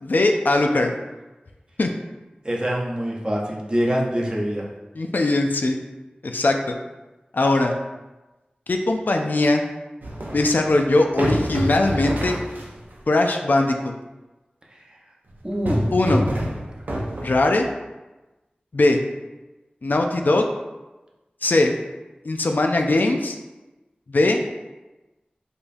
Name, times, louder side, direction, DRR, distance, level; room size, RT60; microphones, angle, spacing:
voice 1, 0.0-0.9 1.8-1.9 5.0-5.8 6.2-6.7 7.3-7.7 8.7-9.6 10.3-12.4 13.1-13.9 15.9-16.3 17.2-17.6 18.7-19.0 19.8-20.5 21.4-21.7 22.3-23.4 24.1-24.6, left 2 dB, 70° left, 3 dB, 0.3 m, -20 dB
voice 2, 2.4-4.7 14.7-14.8 15.4-15.9, equal, 30° right, -2 dB, 0.7 m, -25 dB
sound 1, 10.0-12.9 15.3-17.7, equal, 70° right, 0.6 m, -27 dB
5.0 x 2.3 x 2.6 m, 1.1 s
wide cardioid pair, 50°, 3 cm